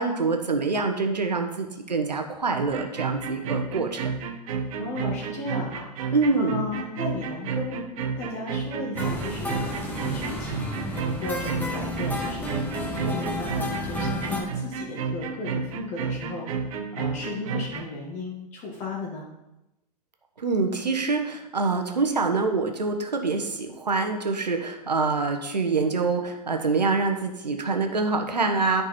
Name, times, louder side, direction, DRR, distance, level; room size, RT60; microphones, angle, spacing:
voice 1, 0.0-4.1 6.1-6.6 20.4-28.8, right 4 dB, 85° right, 4 dB, 1.2 m, -25 dB
sound 1, 2.5-17.9, right 5 dB, 55° right, 1.1 m, -31 dB
voice 2, 4.8-5.9 6.4-9.6 10.1-12.6 12.9-19.2, left 2 dB, 35° left, -2 dB, 1.8 m, -35 dB
sound 2, 8.9-14.4, left 1 dB, 10° left, 1.6 m, -32 dB
9.9 x 5.3 x 4.3 m, 0.94 s
figure-of-eight pair, 100°, 21 cm